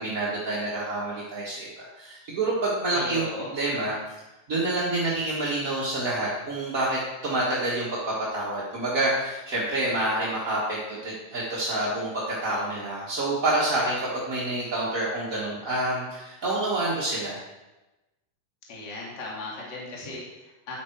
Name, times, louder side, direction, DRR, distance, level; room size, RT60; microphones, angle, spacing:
voice 1, 0.0-3.3 3.5-3.9 4.5-17.4, right 2 dB, 35° right, -7 dB, 1.4 m, -28 dB
voice 2, 2.9-3.5 18.7-20.8, left 3 dB, 35° left, -4 dB, 2.7 m, -37 dB
10.0 x 8.5 x 4.6 m, 1.0 s
omnidirectional pair, 3.8 m